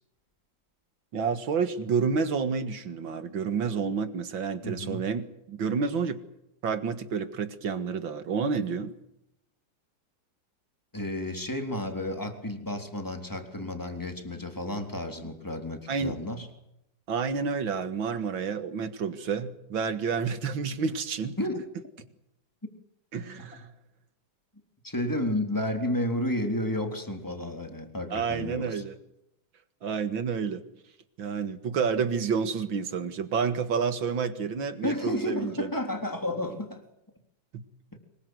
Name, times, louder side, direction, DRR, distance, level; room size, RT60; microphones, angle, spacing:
voice 1, 1.1-6.2 6.6-8.9 15.9-16.1 17.1-21.4 23.1-23.6 28.1-29.0 29.8-30.6 31.2-35.7 37.5-37.6, right 5 dB, 85° right, 2.5 m, -29 dB
voice 2, 4.6-5.1 10.9-16.5 21.4-21.6 23.2-23.7 24.8-28.8 34.8-36.8 37.9-38.0, left 1 dB, 10° left, 3.6 m, -32 dB
25.5 x 22.0 x 7.8 m
omnidirectional pair, 2.1 m